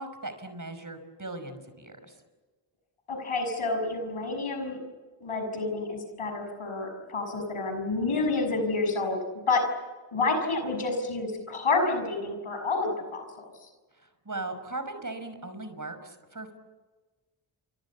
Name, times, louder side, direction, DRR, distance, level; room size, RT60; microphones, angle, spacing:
voice 1, 0.0-2.1 13.9-16.5, right 2 dB, 40° right, 9 dB, 5.6 m, -38 dB
voice 2, 3.1-4.8 5.2-9.2 9.5-9.6 10.1-13.7, left 3 dB, 80° left, 5 dB, 6.4 m, -29 dB
29.5 x 25.0 x 7.3 m, 1.3 s
cardioid pair, 45°, 49 cm